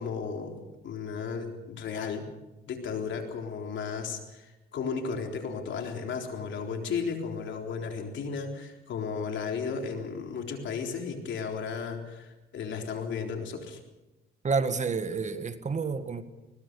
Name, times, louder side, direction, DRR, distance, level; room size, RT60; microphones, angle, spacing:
voice 1, 0.0-2.3 2.7-13.8, left 5 dB, 70° left, 4.0 m, -34 dB
voice 2, 14.4-16.2, right 5 dB, 35° right, 1.7 m, -29 dB
21.0 x 20.5 x 6.9 m
cardioid pair, 90°, 20 cm